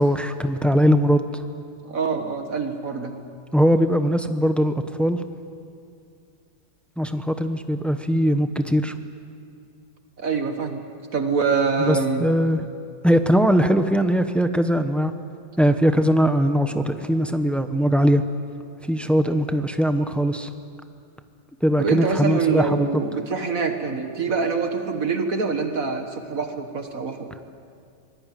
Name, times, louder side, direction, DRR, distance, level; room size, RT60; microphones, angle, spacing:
voice 1, 0.0-1.4 3.5-5.2 7.0-8.9 11.9-12.7 13.0-15.1 15.6-18.2 18.8-20.5 21.6-22.9, equal, ahead, 8 dB, 0.4 m, -20 dB
voice 2, 1.9-3.1 10.2-12.3 21.8-27.3, right 5 dB, 50° right, 6 dB, 1.8 m, -25 dB
24.5 x 19.5 x 9.2 m, 2.4 s
omnidirectional pair, 1.9 m